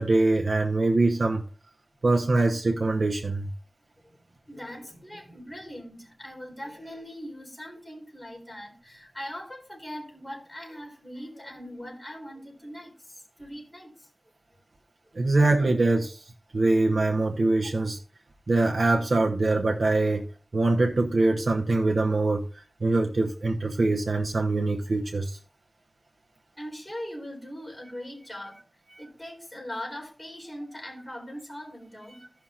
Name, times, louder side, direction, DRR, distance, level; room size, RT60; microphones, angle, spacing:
voice 1, 0.0-1.4 2.0-3.5 15.1-18.0 18.5-20.3 20.5-25.4, right 2 dB, 85° right, 0.9 m, -23 dB
voice 2, 4.0-14.1 17.8-17.9 26.6-28.6 29.0-32.2, equal, 20° left, 3.9 m, -41 dB
16.0 x 5.7 x 2.4 m
wide cardioid pair, 60°, 0 cm